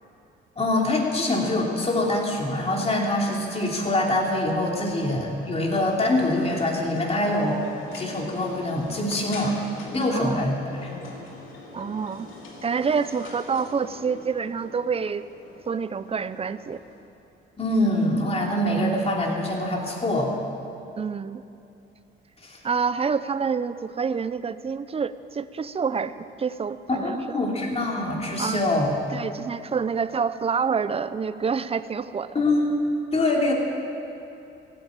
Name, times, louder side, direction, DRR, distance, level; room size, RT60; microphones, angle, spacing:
voice 1, 0.6-7.6 7.9-9.6 9.9-10.9 17.6-20.3 22.4-22.6 27.0-28.9 32.3-32.8 33.1-33.5, left 1 dB, 30° left, -1 dB, 2.9 m, -24 dB
sound 1, 4.4-17.0, left 3 dB, 85° left, 2.5 m, -44 dB
voice 2, 10.1-10.5 11.7-12.3 12.6-15.2 15.7-16.8 21.0-21.4 22.6-27.4 28.4-28.6 29.1-32.4, right 6 dB, 30° right, 14 dB, 0.6 m, -27 dB
15.5 x 9.6 x 8.7 m, 2.8 s
cardioid pair, 90°, 20 cm